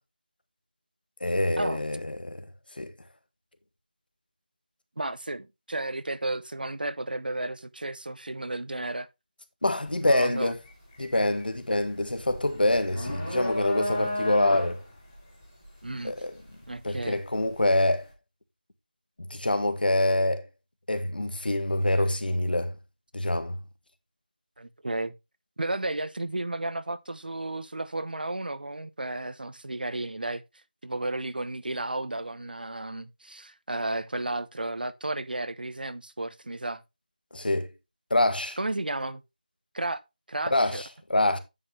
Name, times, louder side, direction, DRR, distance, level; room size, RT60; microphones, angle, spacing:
voice 1, 1.2-2.5 2.8-2.9 9.6-10.6 11.0-14.8 16.0-16.3 16.8-18.1 19.3-20.4 20.9-22.7 23.1-23.6 37.3-37.7 38.1-38.6 40.5-41.4, left 1 dB, 90° left, 1.7 m, -25 dB
voice 2, 5.0-9.1 10.0-10.5 15.8-16.1 16.7-17.2 24.6-25.1 25.6-30.4 30.8-36.8 38.6-39.2 39.7-40.0 40.3-40.8, right 2 dB, 75° right, 1.0 m, -33 dB
sound 1, 9.9-10.1 10.5-17.5, left 1 dB, 15° left, 2.2 m, -33 dB
9.7 x 5.5 x 3.3 m
figure-of-eight pair, 180°, 5 cm